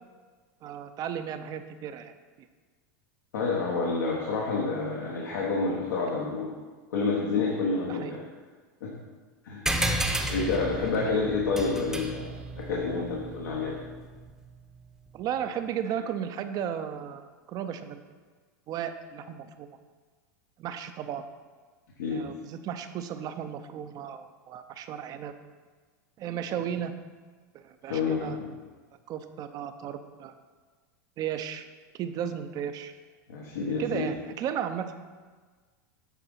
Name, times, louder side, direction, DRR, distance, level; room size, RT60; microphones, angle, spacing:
voice 1, 0.6-2.1 2.4-2.5 7.9-8.2 11.0-11.2 12.9-13.0 15.1-18.0 18.7-19.7 20.6-21.2 22.1-25.3 26.2-26.9 27.5-28.4 29.1-30.3 31.2-31.6 31.9-32.9 33.8-34.9, right 9 dB, 40° right, 9 dB, 0.6 m, -35 dB
voice 2, 3.3-6.5 6.9-8.2 8.8-8.9 9.4-9.6 10.3-13.7 22.0-22.2 27.9-28.5 33.3-34.1, left 4 dB, 85° left, -4 dB, 1.4 m, -28 dB
sound 1, 9.7-14.6, right 1 dB, 5° right, 0.8 m, -33 dB
8.3 x 4.0 x 5.5 m, 1.4 s
hypercardioid pair, 115°, 10 cm